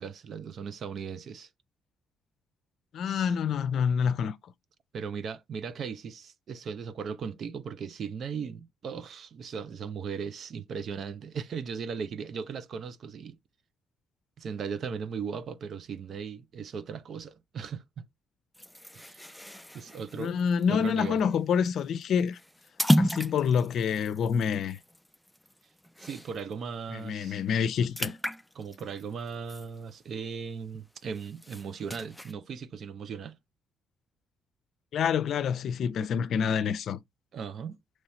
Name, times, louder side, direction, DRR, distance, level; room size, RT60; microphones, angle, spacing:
voice 1, 0.0-1.5 3.0-3.3 4.9-13.4 14.4-18.1 18.9-19.5 19.7-20.3 20.7-21.2 26.0-27.4 28.5-33.4 37.3-37.8, right 6 dB, 60° right, 0.6 m, -37 dB
voice 2, 2.9-4.4 20.2-22.4 23.0-24.8 26.9-28.1 34.9-37.0, left 7 dB, 70° left, 0.6 m, -27 dB
sound 1, 18.5-26.5 26.9-27.1 27.4-30.3 30.7-32.3, equal, 5° left, 0.4 m, -33 dB
5.6 x 3.1 x 3.0 m
cardioid pair, 90°, 0 cm